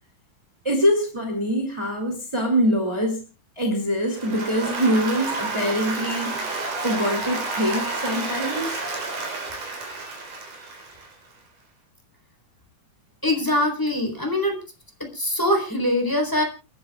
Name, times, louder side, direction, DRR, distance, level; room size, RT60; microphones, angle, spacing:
voice 1, 0.6-3.2 3.5-8.8, equal, 10° right, 1 dB, 1.7 m, -24 dB
Applause, 4.1-11.3, right 3 dB, 60° right, 5.4 m, -30 dB
voice 2, 13.2-14.6 15.0-16.4, left 1 dB, 5° left, 2 dB, 3.3 m, -23 dB
29.5 x 11.0 x 2.3 m, 0.31 s
omnidirectional pair, 4.3 m